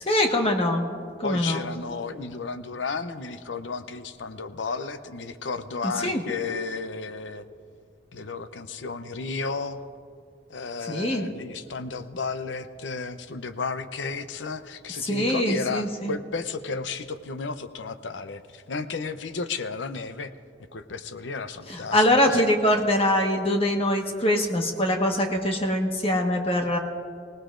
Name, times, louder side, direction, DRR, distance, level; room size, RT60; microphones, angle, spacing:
voice 1, 0.0-1.6 5.8-6.2 10.9-11.3 15.0-16.1 21.7-26.8, left 1 dB, 30° left, 2 dB, 1.4 m, -23 dB
voice 2, 1.2-7.5 8.1-9.9 10.5-20.3 20.7-22.5, left 4 dB, 85° left, 11 dB, 0.7 m, -33 dB
24.0 x 18.5 x 2.5 m, 2.3 s
head